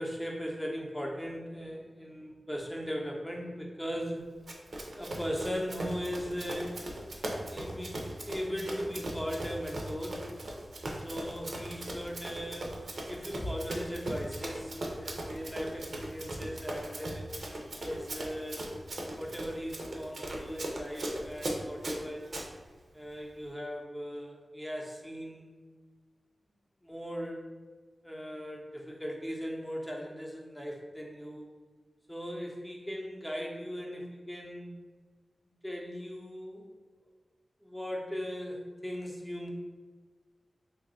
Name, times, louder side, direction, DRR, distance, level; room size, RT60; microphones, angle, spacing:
voice 1, 0.0-4.4 4.9-6.8 7.5-10.2 11.0-12.8 13.1-17.2 17.8-18.6 19.2-22.3 22.9-25.5 26.8-27.5 28.0-31.5 32.1-34.7 35.6-36.7 37.6-39.5, equal, 10° left, -1 dB, 0.7 m, -38 dB
Run, 4.5-22.5, right 1 dB, 65° right, 0.5 m, -39 dB
3.0 x 2.2 x 4.0 m, 1.4 s
cardioid pair, 55°, 0 cm